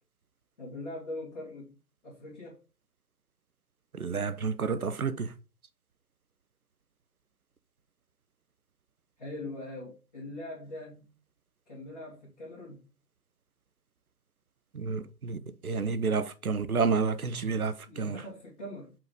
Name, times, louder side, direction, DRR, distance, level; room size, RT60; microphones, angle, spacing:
voice 1, 0.6-1.7 2.0-2.6 9.2-11.2 11.7-12.9 17.9-18.9, left 1 dB, 25° left, 2.1 m, -42 dB
voice 2, 3.9-5.3 14.7-18.2, right 5 dB, 60° right, 0.8 m, -30 dB
5.6 x 3.7 x 5.0 m
figure-of-eight pair, 160°, 50 cm